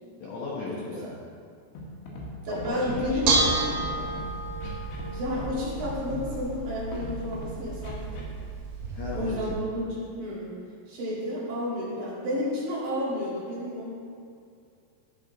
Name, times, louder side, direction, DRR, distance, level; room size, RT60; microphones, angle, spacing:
voice 1, 0.2-1.1 2.5-4.2 8.9-9.4, left 3 dB, 70° left, -6 dB, 1.8 m, -36 dB
Scratching (performance technique), 1.8-2.3 2.6-3.0 3.7-4.2 4.6-5.1 5.3-5.5 5.8-6.2 6.9-7.5 7.8-8.2, left 1 dB, 90° left, 3.9 m, -38 dB
voice 2, 2.5-3.3 5.1-8.3 9.1-10.5 10.9-13.9, left 1 dB, 55° right, -8 dB, 3.6 m, -31 dB
Bell / Dishes pots and pans, 2.9-9.5, right 3 dB, 80° right, 3.4 m, -31 dB
14.0 x 5.2 x 4.0 m, 2.3 s
omnidirectional pair, 5.0 m